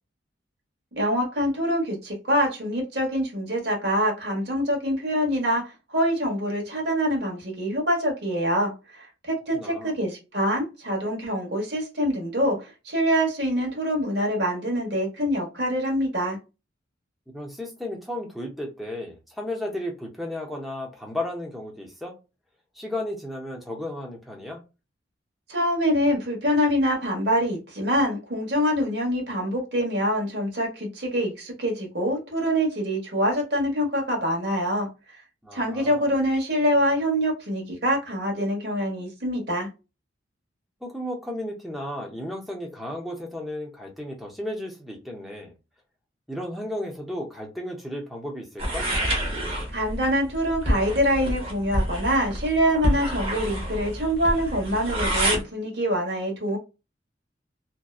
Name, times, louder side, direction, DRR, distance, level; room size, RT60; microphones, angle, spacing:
voice 1, 0.9-16.4 25.5-35.2 35.5-39.7 49.7-56.6, equal, 60° right, 1.1 m, -25 dB
voice 2, 9.5-10.0 17.3-22.2 22.7-24.6 35.4-36.1 40.8-45.5 46.3-48.9, left 1 dB, ahead, 0.6 m, -34 dB
sound 1, 48.6-55.4, equal, 30° right, 0.9 m, -27 dB
2.7 x 2.1 x 2.3 m
head